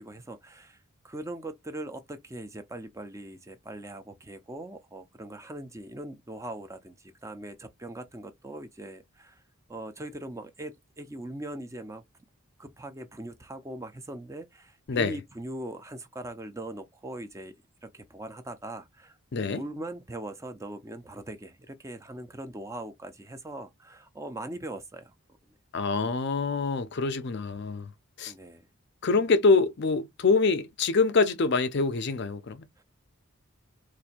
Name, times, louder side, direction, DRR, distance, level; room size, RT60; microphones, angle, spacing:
voice 1, 0.0-9.4 9.7-12.0 12.6-17.5 17.8-19.2 19.5-25.1 28.3-28.7 32.8-32.9, right 1 dB, 15° right, 0.4 m, -41 dB
voice 2, 19.3-19.6 25.7-27.9 28.2-28.3 29.0-32.7, left 4 dB, 50° left, 0.5 m, -25 dB
4.3 x 2.5 x 2.5 m
head